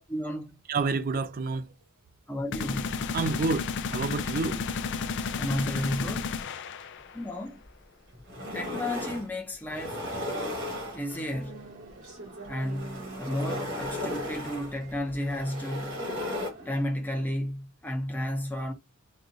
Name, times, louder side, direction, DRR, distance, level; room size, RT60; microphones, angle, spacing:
voice 1, 0.0-0.6 2.3-3.0 5.4-6.3 7.1-7.6 8.5-10.0 10.9-11.6 12.5-16.0 16.6-18.7, left 1 dB, 10° left, 0.7 m, -32 dB
voice 2, 0.7-1.7 3.1-4.6, right 4 dB, 40° right, 0.4 m, -29 dB
sound 1, 2.5-7.3, left 5 dB, 55° left, 0.4 m, -32 dB
sound 2, 7.6-7.7 8.1-9.3 9.7-11.3 12.5-16.5, left 1 dB, 60° right, 1.7 m, -35 dB
sound 3, 10.9-16.8, right 2 dB, 80° right, 2.2 m, -47 dB
4.0 x 2.4 x 2.7 m
head